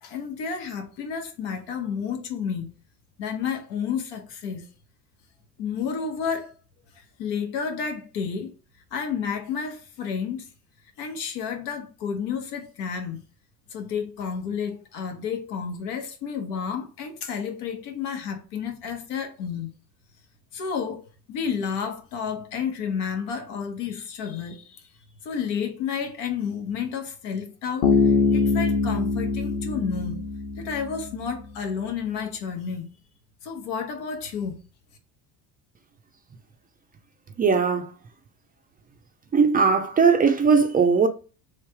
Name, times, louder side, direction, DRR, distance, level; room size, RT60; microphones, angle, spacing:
voice 1, 0.0-2.7 3.2-4.7 5.6-6.5 6.9-8.5 8.9-10.5 11.0-13.2 13.7-19.7 20.5-24.8 25.2-30.3 30.6-32.9 33.4-34.6, left 6 dB, 85° left, 1.2 m, -31 dB
Bass guitar, 27.8-31.3, left 4 dB, 40° left, 1.0 m, -23 dB
voice 2, 37.4-37.9 39.3-41.1, right 5 dB, 25° right, 0.3 m, -19 dB
3.3 x 3.2 x 4.6 m
cardioid pair, 130°, 41 cm